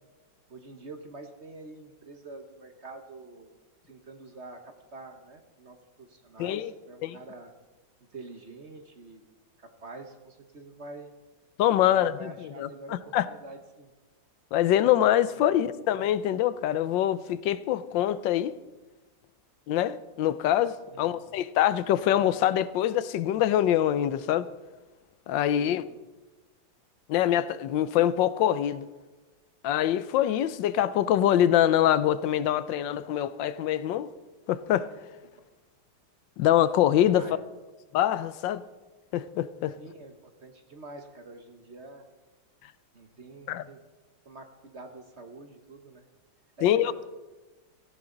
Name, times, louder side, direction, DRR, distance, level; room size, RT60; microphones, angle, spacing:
voice 1, 0.5-3.5 3.9-7.5 8.1-9.2 9.6-11.1 11.8-13.9 15.3-15.6 20.9-21.2 25.4-26.0 35.3-35.4 37.2-37.4 39.8-42.1 42.9-43.8 44.2-46.1 46.6-47.1, right 2 dB, 40° right, 1.2 m, -46 dB
voice 2, 6.4-6.7 7.0-7.2 11.6-12.3 12.6-12.7 13.1-13.3 14.5-18.5 19.7-24.5 25.3-25.8 27.1-28.9 29.6-34.1 34.5-34.9 36.4-37.2 37.9-38.6 39.1-39.7 43.5-43.6 46.6-47.1, left 11 dB, 80° left, 1.3 m, -24 dB
17.0 x 14.5 x 3.9 m
omnidirectional pair, 2.0 m